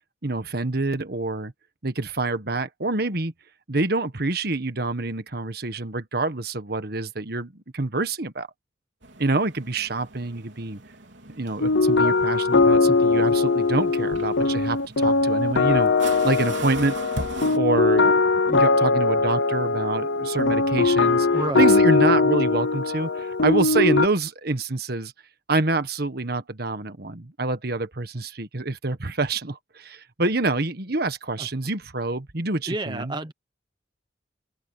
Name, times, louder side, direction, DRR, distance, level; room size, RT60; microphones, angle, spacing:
voice 1, 0.2-1.5 1.8-3.3 3.7-8.5 9.2-10.8 11.3-15.9 16.2-17.0 17.5-18.1 18.4-21.3 21.6-25.1 25.5-33.1, right 2 dB, 55° right, 1.5 m, -26 dB
sound 1, 9.0-17.6, right 2 dB, 80° right, 4.0 m, -39 dB
sound 2, 11.6-24.1, left 3 dB, 80° left, 0.9 m, -20 dB
voice 2, 21.3-21.7 31.4-31.5 32.7-33.3, right 2 dB, 25° right, 1.0 m, -30 dB
open air
head